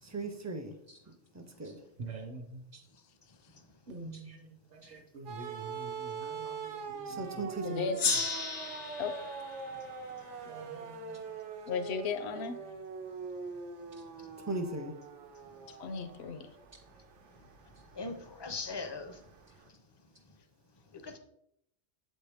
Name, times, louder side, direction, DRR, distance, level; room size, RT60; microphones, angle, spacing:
voice 1, 0.0-0.8 1.3-1.8 6.8-7.9 14.4-14.9, right 2 dB, 25° right, 6 dB, 0.4 m, -38 dB
voice 2, 2.0-2.8 3.9-8.2 10.4-11.2, right 3 dB, 60° right, 2 dB, 0.9 m, -47 dB
sound 1, 5.3-19.7, right 5 dB, 85° right, 1.0 m, -43 dB
voice 3, 7.6-8.0 9.0-9.1 11.7-12.6 15.8-16.5, left 5 dB, 75° left, 9 dB, 0.9 m, -35 dB
Gong, 8.0-11.1, left 4 dB, 90° left, 1.2 m, -35 dB
voice 4, 18.0-19.2 20.9-21.2, left 3 dB, 35° left, 7 dB, 0.4 m, -39 dB
7.7 x 4.3 x 3.4 m, 0.75 s
omnidirectional pair, 1.2 m